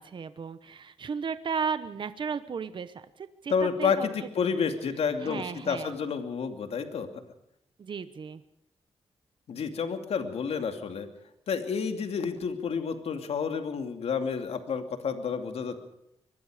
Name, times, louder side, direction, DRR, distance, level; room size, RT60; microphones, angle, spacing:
voice 1, 0.0-4.3 5.2-5.9 7.8-8.4, right 6 dB, 50° right, 12 dB, 1.0 m, -35 dB
voice 2, 3.5-7.1 9.5-11.1 11.5-15.8, left 6 dB, 75° left, 7 dB, 2.7 m, -30 dB
24.0 x 21.0 x 5.0 m, 0.80 s
wide cardioid pair, 125°, 11 cm